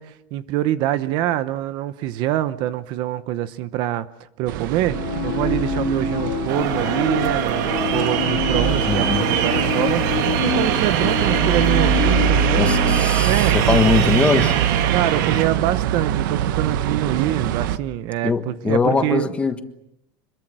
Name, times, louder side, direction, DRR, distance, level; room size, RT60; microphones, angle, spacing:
voice 1, 0.0-4.1 4.4-13.8 14.9-19.3, right 13 dB, 45° right, 14 dB, 0.9 m, -25 dB
sound 1, 4.5-17.8, right 9 dB, 85° right, 1.1 m, -23 dB
sound 2, 4.9-13.0, left 9 dB, 45° left, 3.0 m, -27 dB
sound 3, 6.5-15.5, right 9 dB, 70° right, 2.6 m, -24 dB
voice 2, 8.9-9.2 12.6-14.6 18.2-19.6, left 4 dB, 10° left, 8 dB, 1.5 m, -21 dB
26.0 x 22.0 x 7.6 m, 0.82 s
cardioid pair, 175°, 11 cm